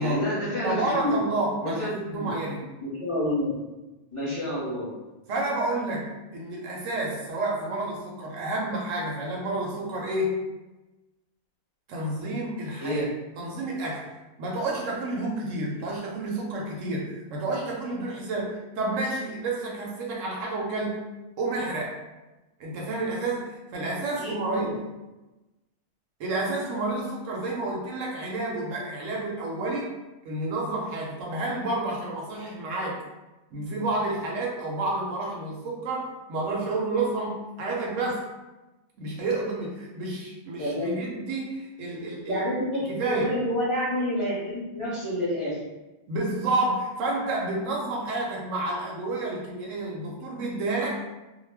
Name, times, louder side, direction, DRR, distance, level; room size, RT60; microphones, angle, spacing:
voice 1, 0.0-1.2 1.6-2.3 2.8-3.6 4.1-4.9 12.8-13.1 24.2-24.7 40.6-40.9 42.3-45.7, equal, 25° left, -9 dB, 0.8 m, -28 dB
voice 2, 0.6-2.6 5.3-10.4 11.9-13.1 13.4-14.1 14.4-21.0 21.4-22.0 22.6-24.8 26.2-29.9 30.2-33.0 33.5-38.2 39.0-42.4 42.9-43.4 46.1-51.0, right 2 dB, 70° right, -2 dB, 0.9 m, -30 dB
2.4 x 2.1 x 3.2 m, 1.1 s
omnidirectional pair, 1.5 m